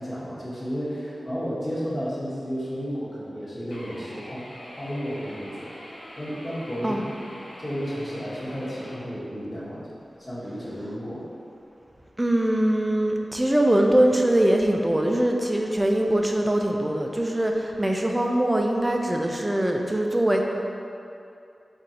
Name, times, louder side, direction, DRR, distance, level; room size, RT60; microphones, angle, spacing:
voice 1, 0.0-5.7 6.2-9.8 10.2-11.2, equal, 30° left, -9 dB, 1.2 m, -32 dB
sound 1, 3.7-8.9, equal, 80° left, 0.8 m, -43 dB
voice 2, 12.2-20.4, right 1 dB, 20° right, 1 dB, 0.4 m, -22 dB
3.8 x 2.6 x 4.2 m, 2.6 s
cardioid pair, 50°, 0 cm